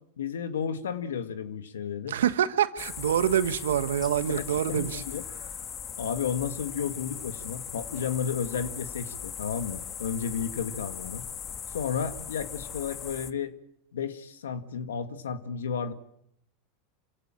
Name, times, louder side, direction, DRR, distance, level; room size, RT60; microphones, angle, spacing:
voice 1, 0.2-2.2 4.3-5.2 6.0-11.3 11.7-13.5 13.9-15.9, left 7 dB, 85° left, 2.0 m, -32 dB
voice 2, 2.1-5.0, right 10 dB, 85° right, 1.5 m, -26 dB
sound 1, 2.8-13.3, left 8 dB, 35° left, 1.4 m, -39 dB
27.0 x 16.5 x 8.9 m
hypercardioid pair, 100°, 0 cm